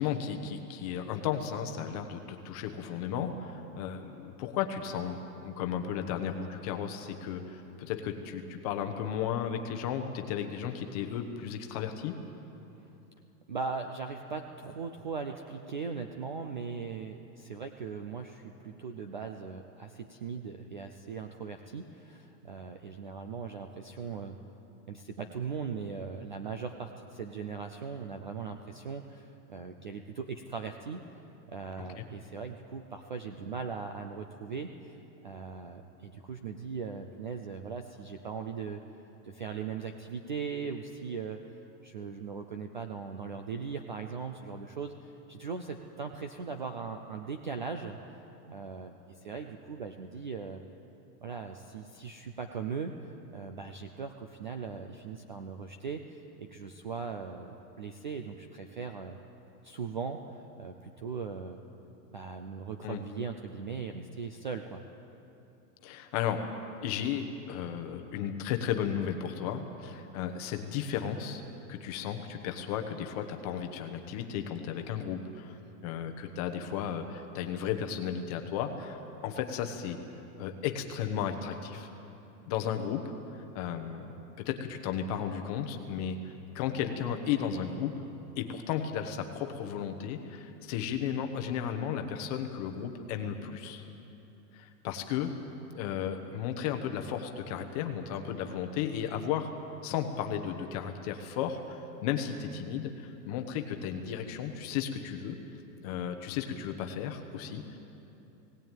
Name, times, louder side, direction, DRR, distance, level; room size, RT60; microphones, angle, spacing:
voice 1, 0.0-12.2 31.8-32.1 62.8-63.0 65.8-66.4 66.8-71.4 71.7-80.0 80.4-81.9 82.5-83.1 83.3-88.0 88.4-93.8 94.5-95.3 95.7-99.6 99.8-105.4 105.8-107.8, left 8 dB, 25° left, 6 dB, 0.9 m, -34 dB
voice 2, 13.5-24.4 24.9-31.0 31.5-34.7 35.2-38.8 39.2-41.4 41.8-48.0 48.5-50.6 51.2-59.2 59.6-61.6 62.1-64.8, right 5 dB, 35° right, 6 dB, 0.4 m, -39 dB
18.0 x 17.5 x 9.1 m, 2.9 s
supercardioid pair, 180°, 49 cm